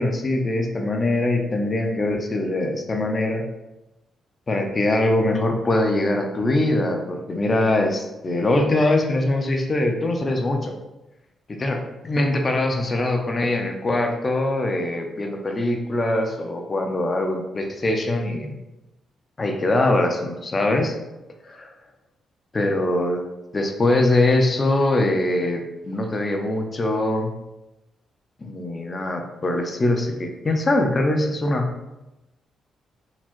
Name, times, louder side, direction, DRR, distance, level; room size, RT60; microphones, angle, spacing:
voice 1, 0.0-3.5 4.5-10.8 11.5-18.6 19.4-20.9 21.4-21.7 22.5-23.3 23.5-27.3 28.4-31.7, left 2 dB, 35° left, 3 dB, 0.6 m, -22 dB
4.0 x 3.0 x 2.5 m, 0.98 s
cardioid pair, 85°, 0 cm